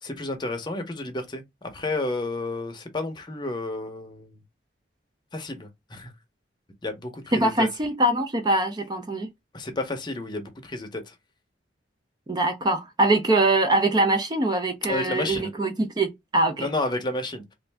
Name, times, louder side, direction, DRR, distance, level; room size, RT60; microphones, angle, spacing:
voice 1, 0.0-4.4 5.3-6.1 6.8-7.7 9.5-11.2 14.9-15.5 16.6-17.5, left 2 dB, 25° left, 0.7 m, -31 dB
voice 2, 7.3-9.3 12.3-16.7, right 2 dB, 25° right, 0.4 m, -23 dB
3.1 x 2.5 x 3.3 m
head